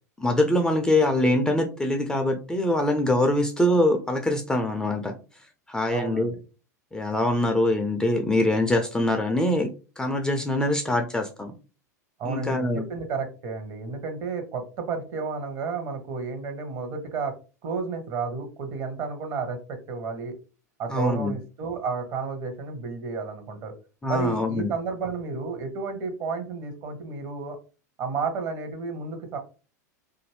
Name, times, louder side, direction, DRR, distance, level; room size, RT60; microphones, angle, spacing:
voice 1, 0.2-5.2 5.7-6.3 6.9-9.7 10.0-11.5 12.2-12.8 20.9-21.3 24.0-24.7, left 1 dB, 5° left, 4 dB, 0.4 m, -23 dB
voice 2, 5.9-6.3 12.2-17.3 17.6-20.4 20.8-23.7 24.1-27.6 28.0-29.4, right 4 dB, 40° right, 6 dB, 0.9 m, -32 dB
2.6 x 2.5 x 3.2 m, 0.33 s
figure-of-eight pair, 90°, 9 cm